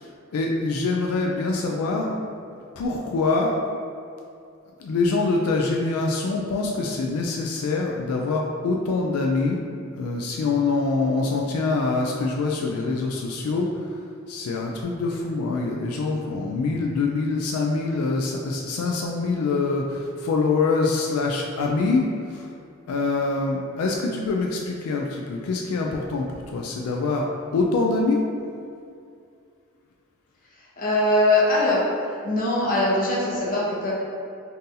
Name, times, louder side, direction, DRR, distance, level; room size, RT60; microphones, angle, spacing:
voice 1, 0.0-2.2 2.8-3.6 4.8-9.6 10.0-22.5 22.9-28.2, left 3 dB, 90° left, 0 dB, 0.3 m, -25 dB
voice 2, 30.8-31.8 32.2-33.9, left 1 dB, 40° left, -6 dB, 0.8 m, -21 dB
3.7 x 2.7 x 2.7 m, 2.4 s
head